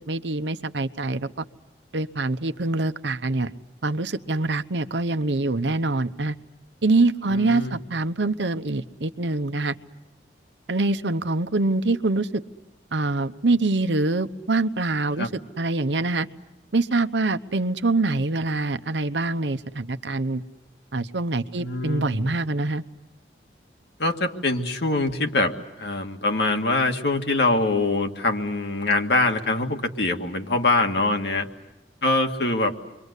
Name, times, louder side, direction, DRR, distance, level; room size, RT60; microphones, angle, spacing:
voice 1, 0.1-1.4 1.9-3.5 3.8-6.4 6.8-9.8 10.7-12.4 12.9-15.3 15.6-16.3 16.7-20.4 20.9-22.8, right 2 dB, 80° right, 10 dB, 0.9 m, -24 dB
voice 2, 7.2-7.8 15.2-15.3 21.5-22.4 24.0-31.5 32.0-32.7, left 2 dB, 70° left, 4 dB, 2.1 m, -24 dB
28.5 x 23.5 x 8.2 m, 1.0 s
head